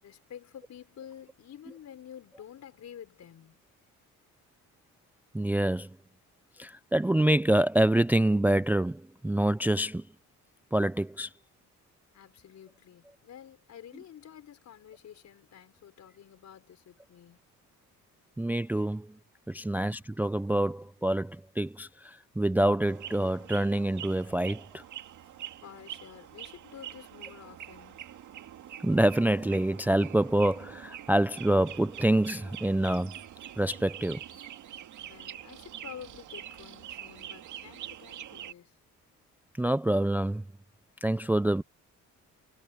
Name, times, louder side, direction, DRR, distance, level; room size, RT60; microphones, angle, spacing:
voice 1, 0.0-3.6 12.1-17.4 25.6-28.0 35.0-38.8, left 9 dB, 65° left, 5.0 m, -49 dB
voice 2, 5.3-5.9 6.6-10.0 10.7-11.3 18.4-19.1 19.5-24.8 28.8-33.2 33.6-34.2 39.6-40.4 41.0-41.6, right 1 dB, 5° right, 0.4 m, -26 dB
sound 1, 22.8-38.5, right 11 dB, 75° right, 2.2 m, -45 dB
cardioid pair, 90°, 30 cm